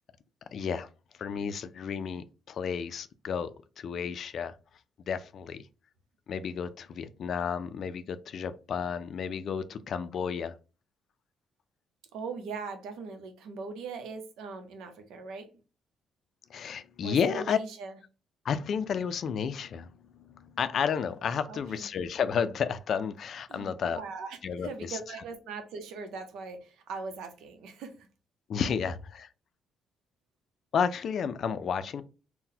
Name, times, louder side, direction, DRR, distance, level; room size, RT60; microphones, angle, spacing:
voice 1, 0.5-0.9 1.2-4.6 5.1-5.7 6.3-10.5 16.5-17.6 18.4-24.0 24.4-25.0 28.5-29.3 30.7-32.0, left 7 dB, 60° left, 0.3 m, -32 dB
voice 2, 12.1-15.5 17.0-18.0 21.5-21.8 23.5-28.1, right 4 dB, 85° right, 0.7 m, -40 dB
3.9 x 2.1 x 2.7 m
cardioid pair, 90°, 0 cm